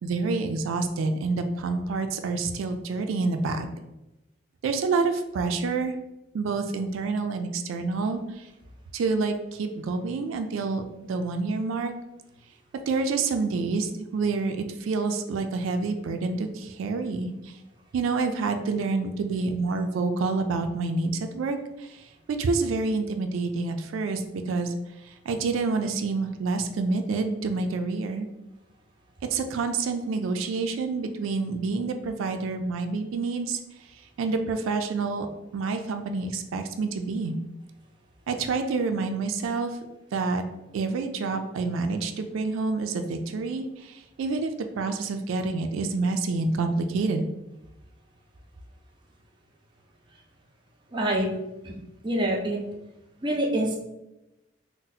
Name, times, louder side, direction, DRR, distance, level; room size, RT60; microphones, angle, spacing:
voice 1, 0.0-3.7 4.6-5.9 6.3-8.5 8.9-11.9 12.9-17.6 17.9-24.7 25.0-28.3 29.2-33.6 33.9-35.3 35.5-37.4 38.3-39.8 40.1-40.4 40.7-47.2, right 4 dB, 90° right, 6 dB, 0.3 m, -28 dB
voice 2, 50.9-51.3 51.6-51.7 52.0-52.6 53.2-53.8, right 1 dB, 25° right, -1 dB, 0.4 m, -25 dB
2.7 x 2.0 x 3.9 m, 0.95 s
head